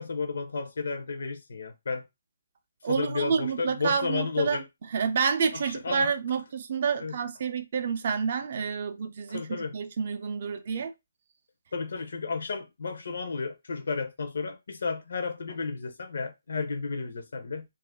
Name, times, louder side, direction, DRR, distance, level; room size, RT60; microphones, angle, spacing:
voice 1, 0.0-2.1 2.8-4.6 5.5-6.1 7.0-7.2 9.3-9.7 11.7-17.7, left 4 dB, 55° left, 0.5 m, -32 dB
voice 2, 2.8-4.6 4.9-10.9, right 6 dB, 30° right, 0.4 m, -29 dB
2.8 x 2.3 x 3.5 m
hypercardioid pair, 175°, 0 cm